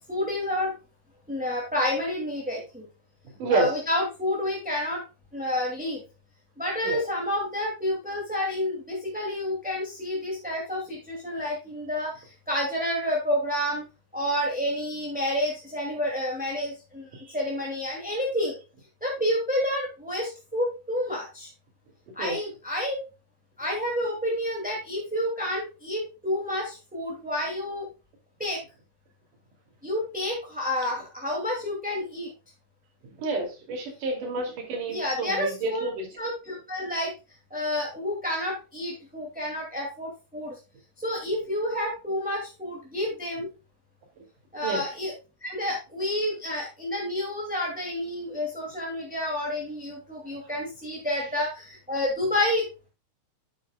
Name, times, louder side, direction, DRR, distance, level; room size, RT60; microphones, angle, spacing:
voice 1, 0.1-0.7 1.3-2.8 3.5-5.0 5.3-6.0 6.6-13.8 14.1-18.5 19.0-21.5 22.1-23.0 23.6-27.8 28.4-28.6 29.8-32.3 34.9-35.9 36.2-37.1 37.5-40.6 41.0-43.5 44.5-45.1 45.4-52.7, left 1 dB, 5° right, -2 dB, 1.6 m, -29 dB
voice 2, 33.2-36.0 44.6-44.8, right 3 dB, 70° right, 2 dB, 4.2 m, -29 dB
9.8 x 8.8 x 2.3 m, 0.30 s
omnidirectional pair, 3.8 m